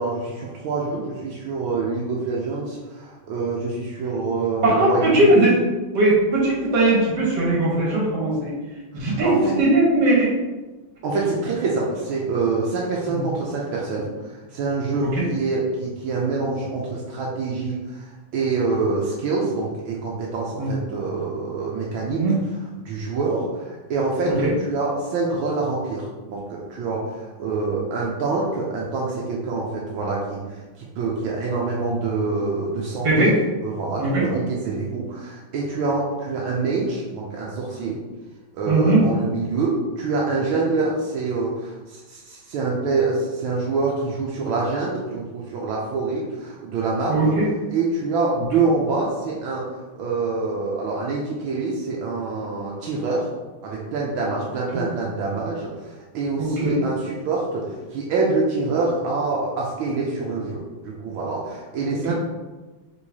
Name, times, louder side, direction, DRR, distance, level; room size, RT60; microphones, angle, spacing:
voice 1, 0.0-5.3 8.9-9.5 11.0-14.1 14.5-22.2 22.8-30.4 30.8-33.3 33.6-38.0 38.5-47.3 47.7-49.6 50.0-53.3 53.6-57.6 57.9-62.1, right 3 dB, 85° right, -4 dB, 1.5 m, -26 dB
voice 2, 4.6-5.6 5.9-8.6 8.9-10.3 13.1-13.2 15.2-15.3 20.6-20.7 22.1-22.3 24.2-24.5 33.0-33.3 34.0-34.2 38.7-39.0 47.1-47.5 54.7-54.8 56.4-56.8 62.1-62.2, right 2 dB, 60° right, -4 dB, 1.9 m, -19 dB
4.6 x 4.0 x 2.7 m, 1.2 s
omnidirectional pair, 2.2 m